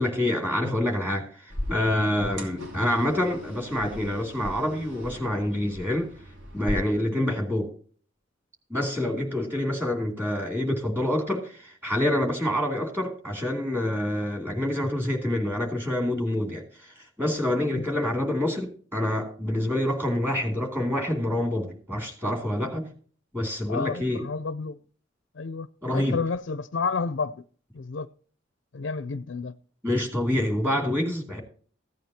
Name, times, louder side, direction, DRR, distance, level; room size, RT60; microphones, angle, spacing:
voice 1, 0.0-6.1 6.5-7.7 8.7-22.9 23.3-24.3 25.8-26.2 29.8-31.4, left 1 dB, 10° right, 2.6 m, -27 dB
sound 1, 1.5-6.7, left 1 dB, 80° right, 2.8 m, -38 dB
voice 2, 23.7-24.8 25.4-27.4 27.7-28.1 28.7-29.5, left 4 dB, 70° left, 0.5 m, -31 dB
15.0 x 9.2 x 2.8 m
head